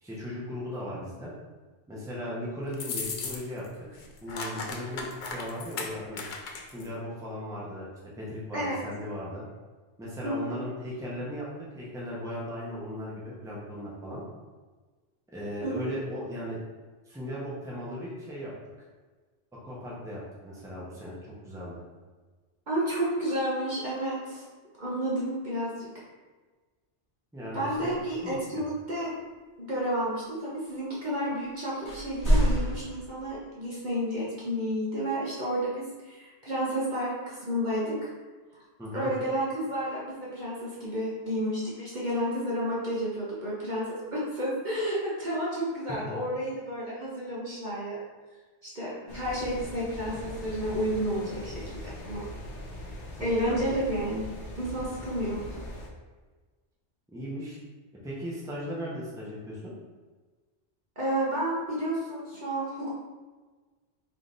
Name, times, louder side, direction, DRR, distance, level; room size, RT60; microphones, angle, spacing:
voice 1, 0.0-1.3 1.9-3.6 4.2-6.2 6.6-7.9 8.2-9.4 10.0-11.4 11.7-14.2 15.3-16.6 17.1-18.5 19.5-21.2 21.4-21.8 27.3-28.0 28.2-28.6 38.8-39.1 45.9-46.1 53.4-53.6 57.1-57.6 58.0-59.7, equal, 5° right, -7 dB, 0.8 m, -37 dB
sound 1, 2.7-3.7 3.9-6.9, left 4 dB, 55° left, 0.6 m, -36 dB
voice 2, 10.2-10.6 15.6-15.9 22.7-24.4 24.8-26.0 27.5-29.1 29.6-38.1 38.9-48.0 48.6-51.8 52.0-52.3 53.2-54.2 54.5-55.6 61.0-62.9, equal, 45° right, -7 dB, 1.0 m, -31 dB
sound 2, 31.9-33.0, equal, 25° left, 1.4 m, -25 dB
sound 3, 49.1-55.9, left 1 dB, 85° left, 1.1 m, -41 dB
3.4 x 2.9 x 3.9 m, 1.3 s
omnidirectional pair, 1.2 m